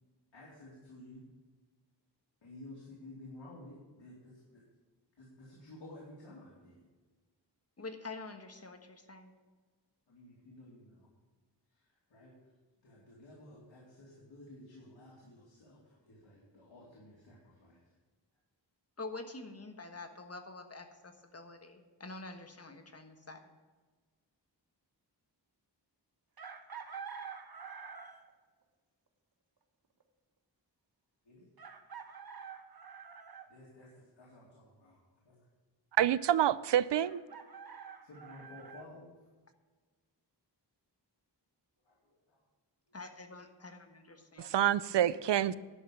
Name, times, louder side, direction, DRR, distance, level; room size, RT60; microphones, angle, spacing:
voice 1, 0.3-1.2 2.4-4.6 5.2-6.8 7.8-7.9 10.1-11.1 11.7-11.8 12.1-12.3 12.8-17.9 31.2-31.5 33.5-35.0 35.2-35.4 38.0-39.1 41.9-42.4 43.6-43.8 44.1-44.2, left 1 dB, 90° left, -5 dB, 2.7 m, -53 dB
voice 2, 7.8-9.3 19.0-23.4 42.9-44.5, left 3 dB, 35° left, 6 dB, 1.4 m, -46 dB
Chicken rooster, 26.4-28.3 30.0-30.1 31.6-33.5 37.0-38.9, right 6 dB, 55° right, 1.2 m, -47 dB
voice 3, 36.0-37.2 44.4-45.6, right 11 dB, 70° right, 18 dB, 0.5 m, -27 dB
11.0 x 5.7 x 8.5 m, 1.4 s
wide cardioid pair, 80°, 43 cm